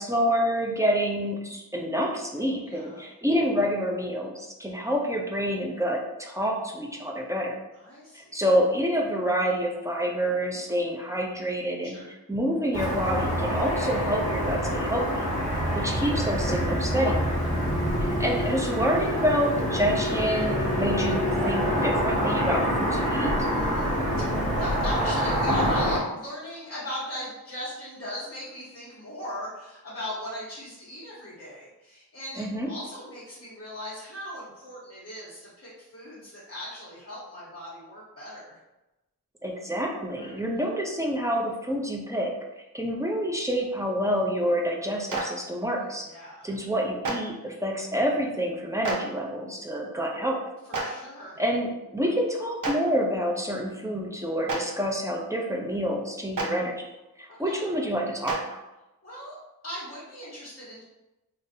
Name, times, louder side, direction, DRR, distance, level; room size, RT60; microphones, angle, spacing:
voice 1, 0.0-7.6 8.1-12.0 12.3-15.2 15.7-17.2 18.0-23.3 32.4-32.7 39.4-42.4 42.7-46.1 46.4-50.4 51.4-56.8 57.2-58.6, equal, 10° right, -1 dB, 0.6 m, -27 dB
voice 2, 2.6-3.0 7.8-8.4 11.8-12.1 23.4-38.6 40.1-40.4 45.8-46.6 50.7-51.4 57.3-57.6 59.0-59.3 59.6-60.8, equal, 35° left, -9 dB, 1.3 m, -39 dB
Car passing by / Traffic noise roadway noise, 12.7-26.0, equal, 20° left, 1.3 m, -26 dB
Clapping, 45.1-45.2 47.0-47.1 48.8-49.0 50.7-50.8 52.6-52.7 54.4-54.6 56.3-56.4 58.2-58.4, right 3 dB, 55° right, 0.8 m, -28 dB
3.8 x 2.6 x 2.7 m, 0.98 s
wide cardioid pair, 70°, 37 cm